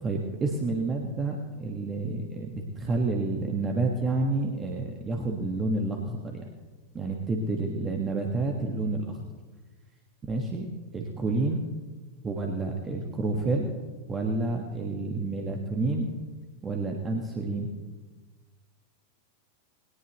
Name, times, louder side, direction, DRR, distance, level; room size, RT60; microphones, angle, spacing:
voice 1, 0.0-6.5 6.9-9.2 10.2-10.7 10.9-11.6 12.2-13.7 14.1-16.1 16.6-17.7, right 2 dB, 20° right, 1 dB, 1.6 m, -29 dB
20.5 x 18.0 x 3.1 m, 1.3 s
figure-of-eight pair, 90°, 0 cm